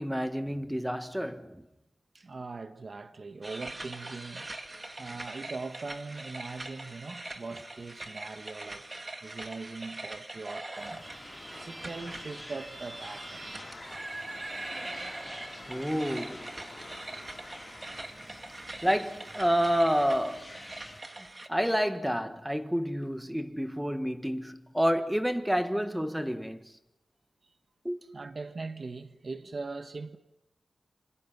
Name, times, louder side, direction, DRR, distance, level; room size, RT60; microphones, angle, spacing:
voice 1, 0.0-1.6 14.7-14.9 15.7-16.5 18.8-20.5 21.5-26.6 27.8-28.0, equal, 5° right, 1.4 m, -29 dB
voice 2, 2.1-4.5 5.0-11.1 11.7-13.5 17.8-18.5 27.4-27.5 28.1-30.2, right 3 dB, 40° right, 1.4 m, -41 dB
sound 1, 3.4-21.5, right 2 dB, 25° right, 1.8 m, -42 dB
sound 2, 10.6-18.1, left 3 dB, 35° left, 4.0 m, -50 dB
sound 3, 10.8-21.0, left 2 dB, 15° left, 2.5 m, -50 dB
27.0 x 26.0 x 6.1 m
wide cardioid pair, 125°, 0 cm